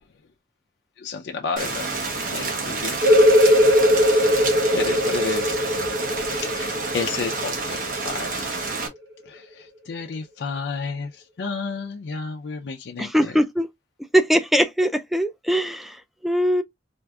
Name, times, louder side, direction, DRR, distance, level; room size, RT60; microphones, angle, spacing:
voice 1, 1.0-1.9 2.3-3.0 4.0-5.6 6.4-7.8 8.0-8.6 9.3-13.3, left 5 dB, 75° left, 0.4 m, -32 dB
Rain, 1.6-8.9, right 3 dB, 50° right, 0.9 m, -29 dB
sound 1, 3.0-8.4, equal, 70° right, 1.2 m, -19 dB
voice 2, 13.0-13.7 14.1-16.6, equal, ahead, 0.3 m, -21 dB
4.6 x 2.5 x 2.2 m
head